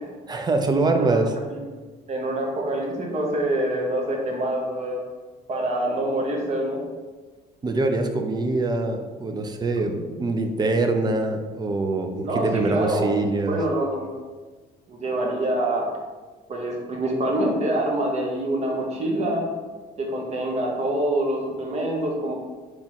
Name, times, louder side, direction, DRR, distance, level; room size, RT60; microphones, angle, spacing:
voice 1, 0.3-1.3 7.6-13.6, right 2 dB, 25° right, 6 dB, 0.4 m, -24 dB
voice 2, 2.1-5.0 5.5-6.8 10.1-10.2 12.2-13.2 13.5-14.1 14.9-15.9 16.5-19.4 20.0-22.3, right 1 dB, 40° right, 0 dB, 1.0 m, -25 dB
3.5 x 3.0 x 4.3 m, 1.4 s
cardioid pair, 110°, 17 cm